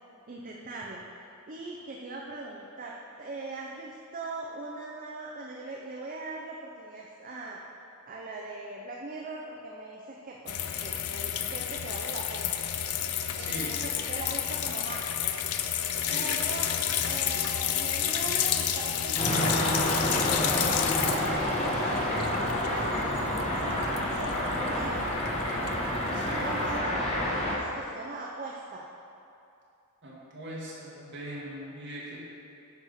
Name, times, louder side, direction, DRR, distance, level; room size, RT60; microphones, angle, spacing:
voice 1, 0.3-1.0 1.5-7.6 8.1-12.6 13.3-15.4 16.1-16.7 17.0-19.9 20.3-21.8 22.5-25.2 26.1-28.9, right 3 dB, 40° right, -2 dB, 0.6 m, -40 dB
sound 1, 10.5-26.8, left 9 dB, 80° left, 0.5 m, -31 dB
voice 2, 13.4-13.7 16.0-16.4 26.1-26.5 30.0-32.2, right 1 dB, 55° right, -6 dB, 2.0 m, -40 dB
sound 2, 19.2-27.6, left 1 dB, 30° left, 1.4 m, -28 dB
9.5 x 4.2 x 6.5 m, 2.7 s
head